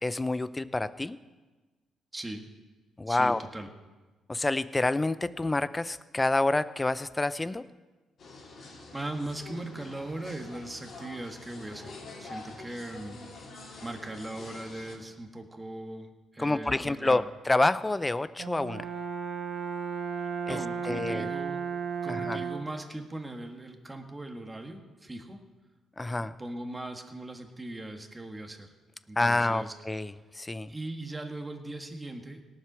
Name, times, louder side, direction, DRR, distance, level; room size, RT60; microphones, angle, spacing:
voice 1, 0.0-1.2 3.0-3.4 4.3-7.6 16.4-18.9 20.5-20.6 20.8-21.3 22.1-22.4 26.0-26.3 29.2-30.7, left 2 dB, 15° left, 15 dB, 0.5 m, -28 dB
voice 2, 2.1-2.4 3.1-3.7 8.9-13.2 13.8-17.3 20.2-21.6 22.0-25.4 26.2-28.7 29.1-29.7 30.7-32.4, right 2 dB, 15° right, 4 dB, 1.6 m, -39 dB
sound 1, 8.2-15.0, left 3 dB, 55° left, 3.3 m, -46 dB
Brass instrument, 18.4-22.8, right 6 dB, 60° right, 1.0 m, -34 dB
18.0 x 7.6 x 6.2 m, 1.2 s
cardioid pair, 90°, 0 cm